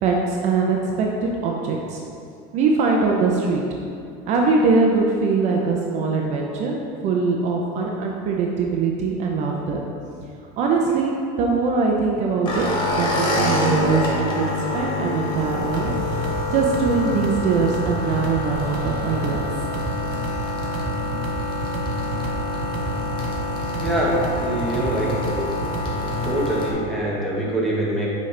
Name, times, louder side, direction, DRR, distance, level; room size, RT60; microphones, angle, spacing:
voice 1, 0.0-2.0 2.5-3.6 4.2-6.7 7.0-9.8 10.6-14.5 14.7-15.9 16.2-19.4, right 4 dB, 40° right, 0 dB, 0.6 m, -22 dB
sound 1, 12.4-26.7, left 2 dB, 25° left, 1.2 m, -27 dB
sound 2, 15.4-26.3, right 1 dB, 80° right, 1.0 m, -30 dB
voice 2, 23.8-25.6 26.2-28.1, right 1 dB, ahead, -6 dB, 1.1 m, -24 dB
8.3 x 5.1 x 3.3 m, 2.5 s
cardioid pair, 160°, 17 cm